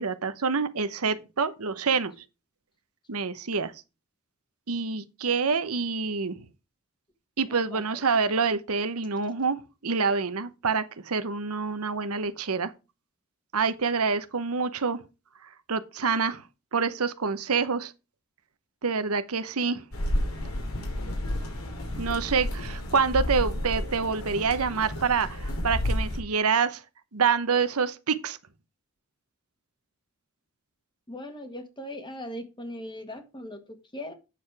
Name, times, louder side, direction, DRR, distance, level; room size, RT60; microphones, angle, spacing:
voice 1, 0.0-2.1 3.1-3.7 4.7-6.5 7.4-12.7 13.5-15.0 15.7-16.4 16.7-17.9 18.8-19.8 22.0-26.8 27.1-28.4, right 5 dB, 85° right, 0.9 m, -27 dB
voice 2, 7.7-8.0 31.1-34.1, left 1 dB, 20° left, 1.7 m, -39 dB
sound 1, 19.9-26.2, left 1 dB, 75° left, 2.9 m, -31 dB
9.2 x 6.7 x 4.7 m
head